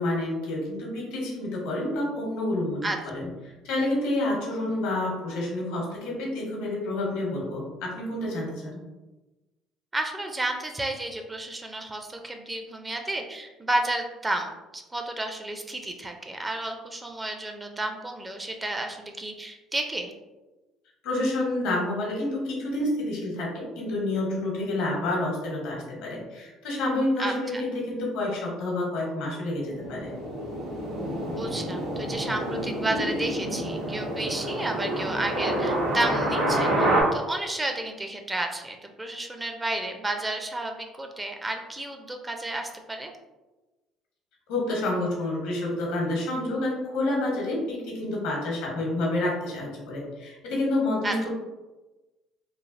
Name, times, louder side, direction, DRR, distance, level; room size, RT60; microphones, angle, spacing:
voice 1, 0.0-3.3 3.6-8.8 21.0-30.1 44.5-51.3, left 1 dB, 85° left, -1 dB, 0.9 m, -29 dB
voice 2, 9.9-20.1 27.2-27.6 31.3-43.1 51.0-51.2, right 2 dB, 15° right, 4 dB, 0.4 m, -32 dB
sound 1, 29.6-37.0, right 1 dB, 85° right, 1.0 m, -28 dB
3.1 x 2.4 x 2.5 m, 1.1 s
supercardioid pair, 95°, 0 cm